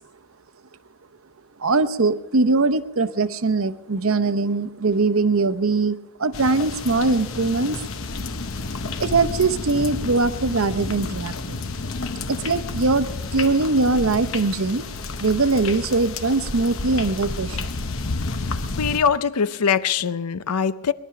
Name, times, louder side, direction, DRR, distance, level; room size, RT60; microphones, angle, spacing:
voice 1, 1.6-7.8 9.0-11.6 12.3-14.8 15.2-17.7, right 3 dB, 65° right, 0.8 m, -21 dB
sound 1, 6.3-19.0, left 3 dB, 60° left, 1.0 m, -30 dB
voice 2, 18.4-20.9, left 7 dB, 90° left, 0.6 m, -23 dB
21.5 x 11.5 x 5.8 m
head